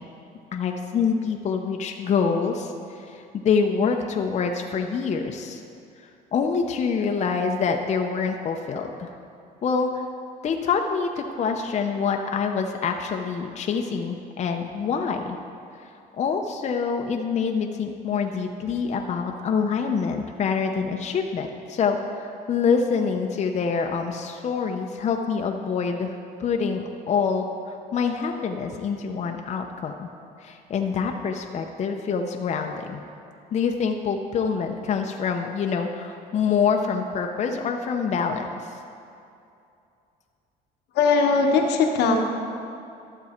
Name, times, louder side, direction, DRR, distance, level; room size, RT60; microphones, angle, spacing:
voice 1, 0.5-5.6 6.3-9.1 9.6-10.0 10.4-15.4 15.8-15.9 16.2-30.1 30.4-33.0 33.5-38.6, left 5 dB, 40° left, 3 dB, 0.6 m, -26 dB
voice 2, 40.9-42.2, left 4 dB, 80° left, 2 dB, 1.1 m, -19 dB
12.5 x 7.0 x 4.3 m, 2.6 s
cardioid pair, 110°, 17 cm